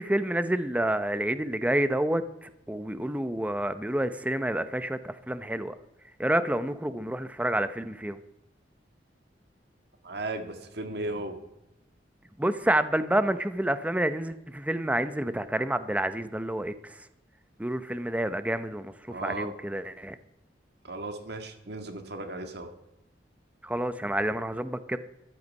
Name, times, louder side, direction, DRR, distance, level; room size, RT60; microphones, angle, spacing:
voice 1, 0.0-5.8 6.2-8.2 12.4-17.1 17.6-20.2 23.6-25.0, right 1 dB, 10° right, 12 dB, 0.7 m, -29 dB
voice 2, 10.0-11.4 19.1-19.5 20.8-22.7, right 2 dB, 65° right, 6 dB, 1.8 m, -36 dB
14.0 x 11.0 x 5.4 m, 0.87 s
head